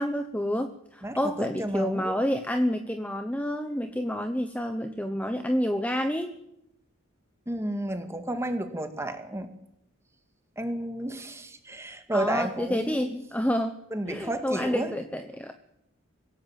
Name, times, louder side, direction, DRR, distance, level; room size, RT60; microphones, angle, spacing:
voice 1, 0.0-6.3 12.1-13.8 14.1-15.5, equal, 5° left, 7 dB, 0.9 m, -29 dB
voice 2, 1.0-2.2 7.5-9.5 10.6-13.2 13.9-14.9, right 1 dB, 15° right, 7 dB, 2.1 m, -32 dB
25.5 x 16.0 x 7.6 m, 0.82 s
head